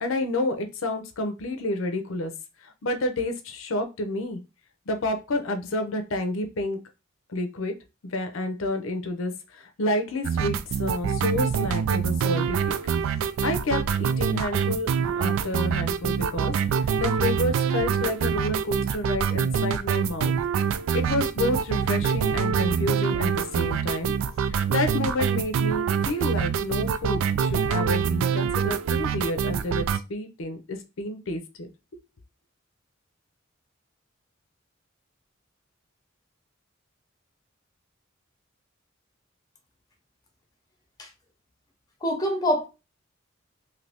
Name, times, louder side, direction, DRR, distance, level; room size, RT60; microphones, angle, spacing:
voice 1, 0.0-2.3 2.6-4.4 4.9-6.8 7.3-7.7 8.1-12.8 13.4-20.3 20.9-24.1 24.5-31.7, left 2 dB, 85° left, 0.6 m, -29 dB
sound 1, 10.2-30.0, right 7 dB, 85° right, 0.3 m, -25 dB
voice 2, 42.0-42.7, equal, 20° left, 0.7 m, -25 dB
2.7 x 2.6 x 3.4 m
head